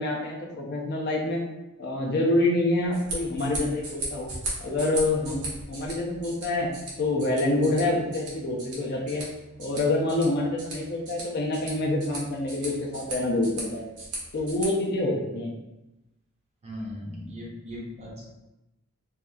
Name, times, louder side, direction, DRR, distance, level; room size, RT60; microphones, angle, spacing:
voice 1, 0.0-1.4 1.8-4.3 4.6-6.7 7.0-9.2 9.6-13.8 14.3-15.6, left 2 dB, 45° left, -2 dB, 0.4 m, -26 dB
sound 1, 2.8-14.7, right 2 dB, 90° right, 0.9 m, -38 dB
voice 2, 16.6-18.3, left 1 dB, 30° right, -3 dB, 0.5 m, -38 dB
2.7 x 2.3 x 2.2 m, 0.97 s
head